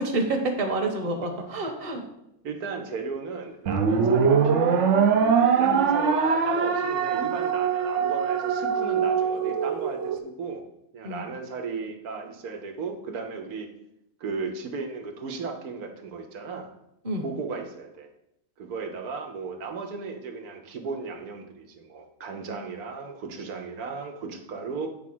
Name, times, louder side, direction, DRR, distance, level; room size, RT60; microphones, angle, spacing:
voice 1, 0.0-2.0 5.6-5.8 11.0-11.2 17.0-17.2, right 2 dB, 25° right, 3 dB, 1.0 m, -28 dB
voice 2, 2.4-4.9 5.6-10.6 10.9-13.7 14.2-16.7 17.2-18.1 18.6-24.9, right 4 dB, 80° right, 4 dB, 1.4 m, -35 dB
sound 1, 3.7-10.2, right 6 dB, 60° right, 0.9 m, -22 dB
8.4 x 3.6 x 6.0 m, 0.82 s
omnidirectional pair, 1.6 m